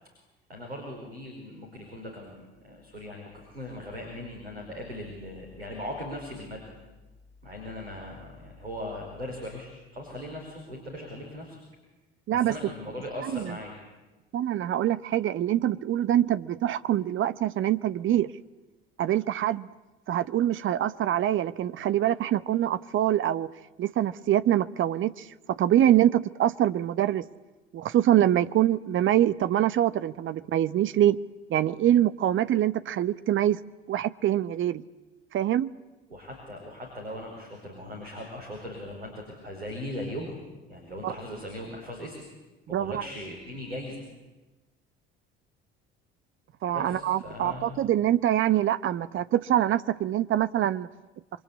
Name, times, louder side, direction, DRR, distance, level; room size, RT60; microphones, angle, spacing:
voice 1, 0.5-6.7 7.4-11.6 12.3-13.7 36.1-40.4 40.7-42.3 42.7-44.0 46.7-47.8, left 1 dB, 80° right, 5.2 m, -39 dB
voice 2, 13.2-13.5 14.3-18.3 19.0-19.7 20.1-23.5 23.8-27.2 27.7-31.2 31.5-33.6 33.9-34.8 35.3-35.7 41.0-41.1 42.7-43.0 46.6-50.9, right 12 dB, 40° right, 1.1 m, -24 dB
28.0 x 24.0 x 8.5 m
figure-of-eight pair, 55°, 31 cm